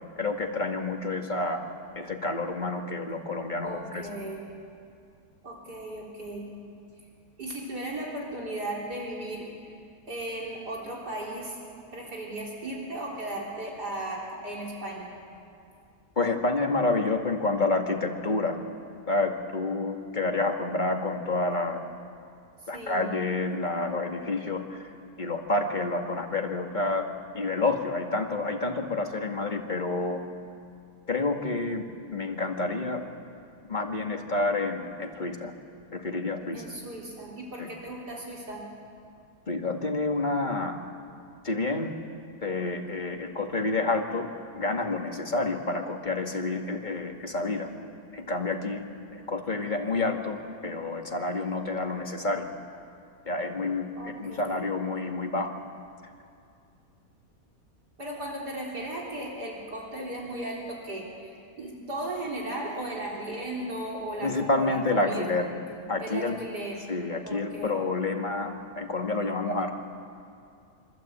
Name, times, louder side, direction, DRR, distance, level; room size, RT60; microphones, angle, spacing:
voice 1, 0.0-1.6 2.0-4.1 16.2-18.6 19.1-21.8 22.7-24.9 25.2-27.1 27.3-30.2 31.1-33.0 33.7-35.5 35.9-36.7 37.6-37.7 39.5-40.8 41.4-41.9 42.4-44.3 44.5-47.7 48.1-48.8 49.1-52.5 53.3-55.5 64.2-65.5 65.9-66.4 66.9-69.7, left 2 dB, 30° left, 2 dB, 2.2 m, -29 dB
voice 2, 3.6-4.4 5.4-6.5 7.4-9.7 10.1-11.6 11.9-15.1 22.7-23.1 36.5-38.6 54.0-54.6 58.0-65.3 66.0-66.8 67.2-67.7, right 1 dB, 70° right, -3 dB, 4.4 m, -36 dB
26.0 x 25.5 x 8.8 m, 2.4 s
omnidirectional pair, 1.8 m